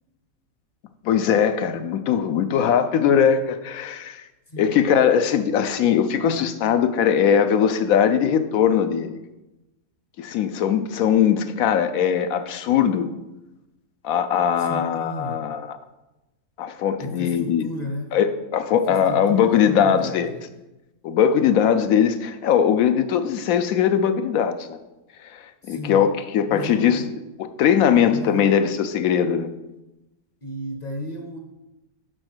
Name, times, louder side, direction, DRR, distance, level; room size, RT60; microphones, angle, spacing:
voice 1, 1.0-4.2 4.6-9.2 10.2-13.1 14.0-15.8 16.6-17.7 18.1-20.3 21.0-24.8 25.3-27.0 27.4-29.5, left 8 dB, 70° left, 10 dB, 0.9 m, -20 dB
voice 2, 4.5-4.8 14.6-15.4 17.0-18.2 18.7-20.4 25.6-26.1 26.5-27.1 28.1-28.5 30.4-31.4, left 1 dB, 35° left, 3 dB, 0.8 m, -34 dB
6.4 x 5.3 x 6.1 m, 0.99 s
omnidirectional pair, 1.6 m